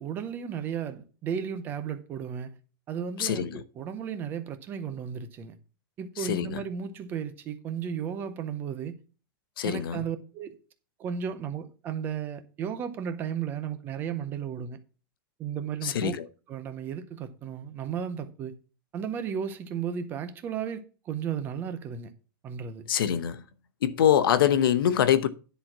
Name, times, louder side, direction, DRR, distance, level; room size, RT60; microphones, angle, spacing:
voice 1, 0.0-2.6 2.9-5.6 6.0-9.0 9.6-10.6 11.0-14.8 15.4-16.2 16.5-18.6 18.9-22.1 22.4-22.9, right 8 dB, 15° right, 0.6 m, -34 dB
voice 2, 3.2-3.6 6.2-6.6 9.6-10.0 15.8-16.3 22.9-23.4 23.8-25.3, left 9 dB, 70° left, 0.9 m, -24 dB
10.0 x 4.3 x 5.9 m
supercardioid pair, 180°, 12 cm